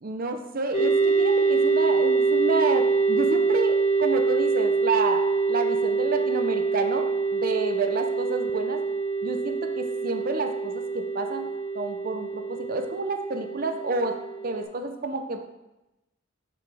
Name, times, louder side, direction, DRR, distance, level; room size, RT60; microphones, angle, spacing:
voice 1, 0.0-8.8 9.2-11.5 11.7-14.1 14.4-15.4, right 3 dB, 45° right, 6 dB, 0.6 m, -30 dB
sound 1, 0.7-14.6, right 4 dB, 30° left, 1.5 m, -25 dB
6.8 x 5.6 x 3.4 m, 0.97 s
head